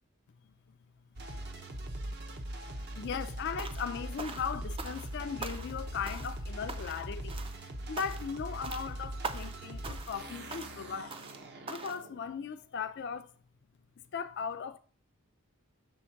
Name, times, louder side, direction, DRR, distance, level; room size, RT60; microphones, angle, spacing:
sound 1, 1.2-12.2, right 1 dB, 50° right, 0.8 m, -41 dB
voice 1, 1.3-1.6 2.7-7.4 7.9-11.2 11.7-13.3 14.1-14.8, left 6 dB, 55° left, 0.4 m, -38 dB
sound 2, 3.6-3.9 4.2-5.1 5.4-5.8 6.0-6.4 6.7-7.0 7.3-7.6 8.0-8.3 8.6-8.9 9.2-9.6 9.8-10.2 10.5-10.8 11.1-11.4 11.7-12.0, right 4 dB, 25° right, 0.4 m, -42 dB
6.2 x 3.5 x 5.7 m
head